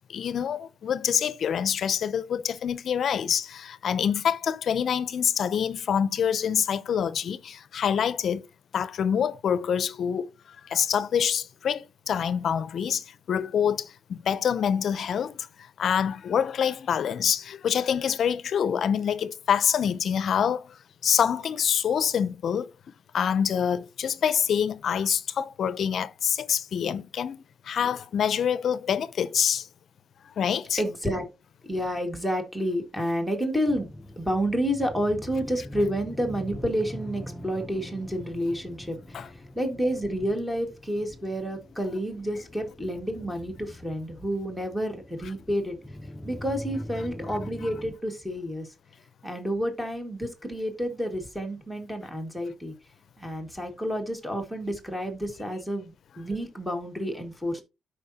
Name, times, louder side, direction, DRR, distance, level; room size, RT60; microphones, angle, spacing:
voice 1, 0.1-8.4 8.7-10.3 10.6-15.5 15.8-20.8 21.0-22.7 23.1-29.7 30.4-30.8 39.1-39.3, left 8 dB, 60° left, 0.6 m, -26 dB
voice 2, 30.8-31.3 31.6-33.9 34.2-45.8 46.2-48.7 49.2-52.7 53.2-57.6, equal, ahead, 1.8 m, -30 dB
sound 1, 33.6-47.9, left 1 dB, 15° left, 0.7 m, -43 dB
12.5 x 5.1 x 2.8 m
cardioid pair, 140°, 0 cm